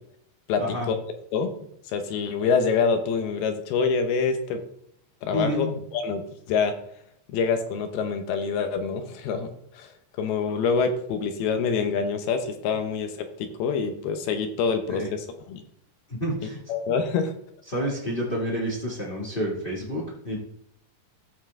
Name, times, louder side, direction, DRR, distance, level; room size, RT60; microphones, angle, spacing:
voice 1, 0.6-0.9 5.3-5.7 14.9-15.1 16.1-16.6 17.7-20.4, equal, 55° left, -3 dB, 0.6 m, -29 dB
voice 2, 1.8-4.6 5.2-6.7 7.3-9.9 10.2-13.1 13.4-15.6 16.7-17.3, left 5 dB, 75° left, 7 dB, 2.5 m, -26 dB
14.5 x 5.5 x 3.6 m, 0.72 s
omnidirectional pair, 5.2 m